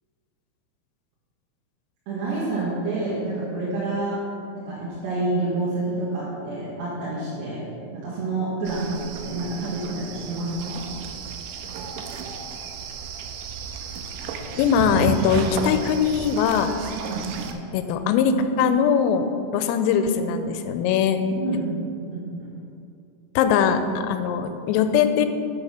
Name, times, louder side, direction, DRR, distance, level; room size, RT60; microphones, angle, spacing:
voice 1, 2.1-4.2 4.5-7.6 7.9-10.8 17.1-17.5 21.3-21.7 22.1-22.5, right 2 dB, 65° right, -8 dB, 3.3 m, -28 dB
sound 1, 8.6-17.5, right 5 dB, 90° right, 2.5 m, -33 dB
voice 2, 14.6-16.7 17.7-19.3 19.5-21.2 21.5-21.7 23.4-25.3, left 7 dB, 85° left, 8 dB, 3.2 m, -21 dB
9.0 x 8.4 x 5.9 m, 2.5 s
omnidirectional pair, 5.9 m